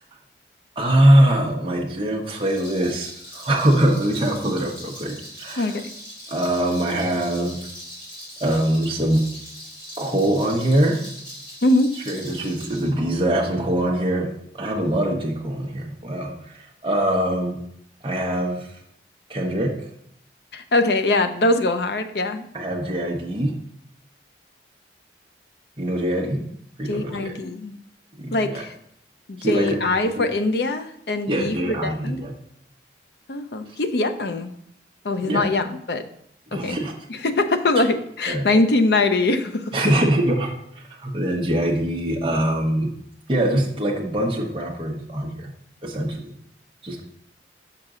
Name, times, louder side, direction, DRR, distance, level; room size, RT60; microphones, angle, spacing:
voice 1, 0.8-5.7 6.3-7.6 8.4-9.2 10.0-11.0 12.1-14.3 14.5-17.6 18.0-18.7 19.3-19.7 22.5-23.5 25.8-26.4 26.8-27.4 28.2-28.6 29.4-29.8 30.2-30.3 31.3-32.3 35.2-35.4 36.5-36.9 38.3-38.4 39.7-42.9 43.3-45.5 45.8-46.3 46.8-47.0, right 1 dB, 30° right, -3 dB, 0.9 m, -23 dB
Rattle, 2.3-12.9, equal, 30° left, 2.3 m, -40 dB
voice 2, 11.6-11.9 20.5-22.4 26.9-27.7 28.3-28.7 29.3-32.2 33.3-34.5 35.0-36.0 36.5-36.8 37.1-39.6, left 2 dB, 65° left, 8 dB, 0.6 m, -22 dB
6.0 x 5.8 x 3.8 m, 0.71 s
head